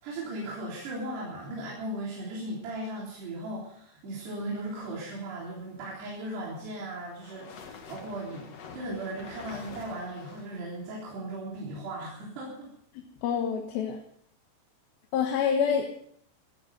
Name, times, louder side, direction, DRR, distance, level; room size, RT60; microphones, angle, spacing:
voice 1, 0.0-8.5 8.7-12.7, right 1 dB, 80° right, -5 dB, 5.7 m, -37 dB
sound 1, 6.0-11.1, left 5 dB, 50° left, 2.3 m, -47 dB
voice 2, 13.2-14.0 15.1-15.9, left 7 dB, 70° left, 2 dB, 3.1 m, -26 dB
16.0 x 15.0 x 5.3 m, 0.64 s
omnidirectional pair, 4.7 m